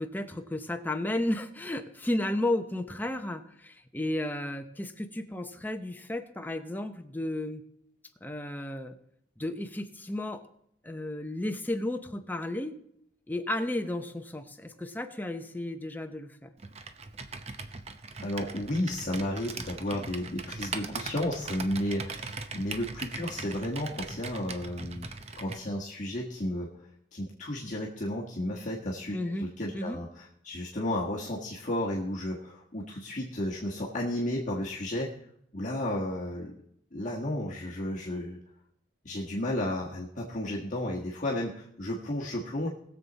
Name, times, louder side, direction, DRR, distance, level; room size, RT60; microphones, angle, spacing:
voice 1, 0.0-7.6 8.2-9.0 9.4-10.4 10.8-12.8 13.3-16.5 29.1-29.5 29.7-30.0, left 1 dB, 10° left, 6 dB, 0.8 m, -33 dB
Computer keyboard, 16.6-25.7, right 4 dB, 35° right, 0.8 m, -40 dB
voice 2, 18.2-25.1 25.3-26.7 27.1-35.1 35.5-36.5 36.9-38.4 39.0-42.7, left 1 dB, 45° left, -4 dB, 1.6 m, -33 dB
20.0 x 7.3 x 4.1 m, 0.72 s
head